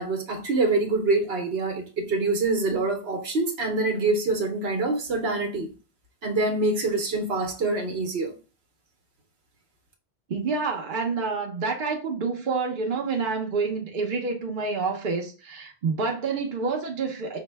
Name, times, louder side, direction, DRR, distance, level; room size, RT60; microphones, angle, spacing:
voice 1, 0.0-5.7 6.2-8.3, right 3 dB, 75° right, 1.1 m, -25 dB
voice 2, 10.3-17.4, right 4 dB, 55° right, 0.9 m, -28 dB
4.9 x 2.1 x 3.3 m
omnidirectional pair, 1.1 m